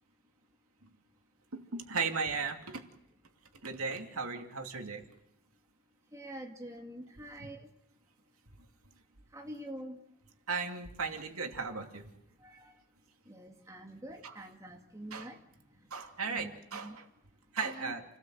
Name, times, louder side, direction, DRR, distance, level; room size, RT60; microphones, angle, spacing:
voice 1, 1.5-2.8 3.6-5.0 7.4-7.5 10.5-12.1 14.2-14.4 15.1-15.3 15.9-17.1 17.5-18.0, right 5 dB, 90° right, 4 dB, 2.7 m, -36 dB
voice 2, 6.1-7.7 9.3-10.0 11.6-11.8 12.4-12.7 13.3-15.4 16.3-16.5 16.8-17.0 17.7-17.9, right 1 dB, 15° right, 2 dB, 2.0 m, -45 dB
29.0 x 18.0 x 7.8 m, 0.83 s
head